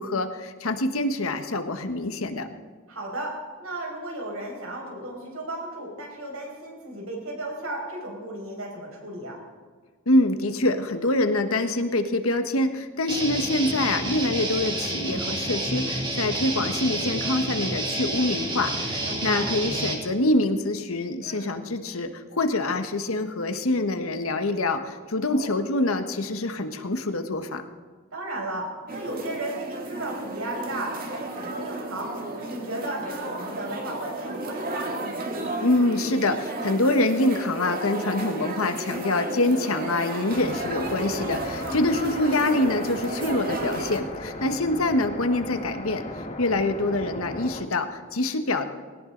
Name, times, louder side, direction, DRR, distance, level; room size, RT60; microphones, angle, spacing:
voice 1, 0.0-2.5 10.1-27.6 35.6-48.7, left 2 dB, 85° left, 7 dB, 1.4 m, -25 dB
voice 2, 2.9-3.3 3.6-9.4 19.0-19.4 21.2-21.6 25.2-25.5 28.1-28.7 28.9-32.1 32.4-34.9 41.6-41.8, right 1 dB, 85° right, -1 dB, 5.9 m, -34 dB
Guitar, 13.1-19.9, right 1 dB, 25° right, 2.7 m, -29 dB
sound 1, 28.9-44.0, right 2 dB, 45° right, 2.0 m, -33 dB
sound 2, 40.3-47.6, left 1 dB, 30° left, 1.7 m, -36 dB
20.0 x 18.0 x 4.0 m, 1.5 s
head